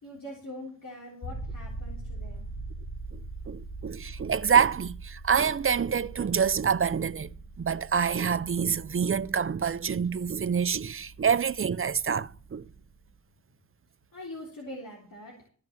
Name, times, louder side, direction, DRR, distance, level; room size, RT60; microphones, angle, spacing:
voice 1, 0.0-2.5 7.4-7.5 14.1-15.3, left 1 dB, 75° left, 3.7 m, -43 dB
sound 1, 1.2-13.1, right 2 dB, 45° left, 6.3 m, -42 dB
voice 2, 3.5-12.7, right 7 dB, 40° right, 0.5 m, -27 dB
14.5 x 5.8 x 7.4 m
wide cardioid pair, 85°, 33 cm